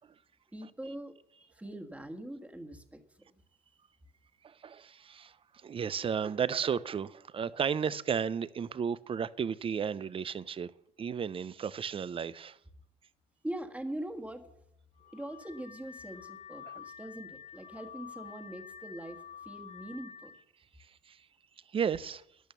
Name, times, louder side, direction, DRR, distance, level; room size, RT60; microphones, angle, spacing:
voice 1, 0.5-3.4 13.4-14.5 15.1-20.3, right 1 dB, 10° right, 1.5 m, -42 dB
voice 2, 4.4-10.7 11.0-12.6 16.7-16.8 20.8-21.3 21.7-22.2, right 7 dB, 35° right, 0.6 m, -34 dB
Car / Alarm, 15.0-20.4, left 8 dB, 40° left, 0.6 m, -49 dB
13.0 x 10.5 x 6.9 m
cardioid pair, 110°, 17 cm